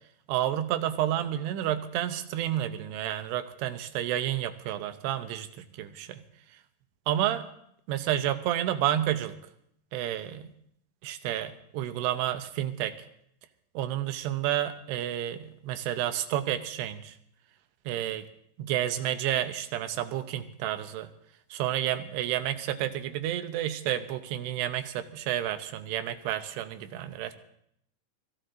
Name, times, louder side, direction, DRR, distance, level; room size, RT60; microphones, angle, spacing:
voice 1, 0.3-6.2 7.1-7.5 7.9-9.4 9.9-10.5 11.0-12.9 13.7-17.1 17.9-18.3 18.6-21.1 21.5-27.3, right 12 dB, 85° right, 9 dB, 2.9 m, -30 dB
23.5 x 15.5 x 2.6 m, 0.71 s
omnidirectional pair, 4.7 m